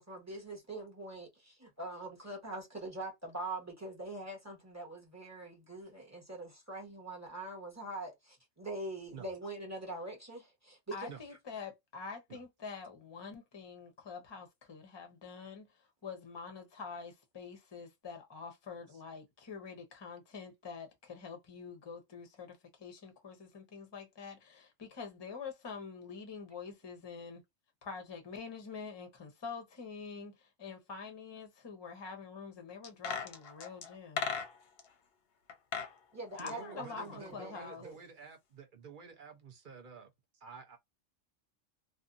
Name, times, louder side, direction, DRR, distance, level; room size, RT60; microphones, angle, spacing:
voice 1, 0.0-11.1 36.1-38.0, right 2 dB, 15° right, 1.0 m, -43 dB
voice 2, 10.9-27.4 27.8-34.3 36.3-37.8, left 5 dB, 25° left, 0.6 m, -46 dB
sound 1, 32.8-34.9 35.5-35.9 36.2-37.6 37.9-38.0, left 6 dB, 60° left, 0.8 m, -39 dB
voice 3, 36.4-40.1 40.4-40.8, right 5 dB, 50° right, 0.7 m, -50 dB
2.6 x 2.5 x 2.5 m
omnidirectional pair, 1.3 m